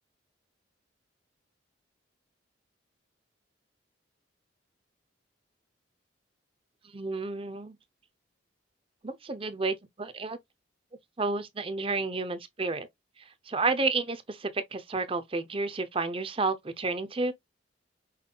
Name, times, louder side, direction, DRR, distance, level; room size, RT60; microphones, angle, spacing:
voice 1, 6.9-7.8 9.0-10.4 11.2-12.9 13.5-17.3, right 3 dB, 30° right, 0.6 m, -31 dB
5.5 x 3.6 x 2.2 m
head